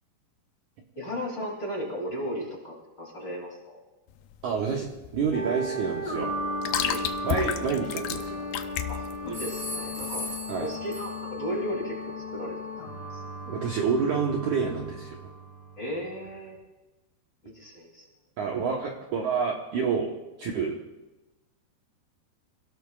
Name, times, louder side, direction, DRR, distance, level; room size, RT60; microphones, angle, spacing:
voice 1, 0.9-3.8 6.8-7.1 8.9-10.3 10.6-12.6 13.1-13.2 15.8-16.6 17.4-18.0, equal, 30° left, -2 dB, 3.2 m, -35 dB
sound 1, 4.1-10.8, left 10 dB, 80° left, 2.0 m, -34 dB
voice 2, 4.4-6.3 7.2-8.5 10.5-10.7 13.5-15.2 18.4-20.1 20.4-20.8, right 5 dB, 65° right, 0 dB, 2.1 m, -28 dB
sound 2, 5.3-16.3, equal, 50° left, 5.9 m, -36 dB
sound 3, 8.1-8.8 9.3-11.5, equal, 5° right, 4.3 m, -39 dB
28.5 x 17.0 x 2.4 m, 1.1 s
omnidirectional pair, 4.9 m